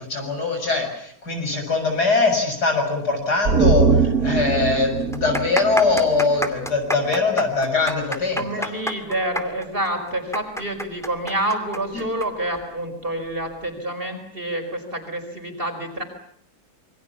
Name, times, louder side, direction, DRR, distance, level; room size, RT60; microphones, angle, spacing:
voice 1, 0.0-8.7 11.9-12.0, left 3 dB, 55° left, 4 dB, 7.3 m, -22 dB
sound 1, 3.4-6.8 7.1-7.2, right 5 dB, 50° right, 2.0 m, -22 dB
sound 2, 4.0-4.1 4.3-4.4 5.0-12.3 12.5-12.6 13.4-13.7, equal, ahead, 2.3 m, -29 dB
voice 2, 8.4-16.0, right 1 dB, 30° right, 5 dB, 5.1 m, -28 dB
27.5 x 24.0 x 7.2 m, 0.64 s
omnidirectional pair, 2.0 m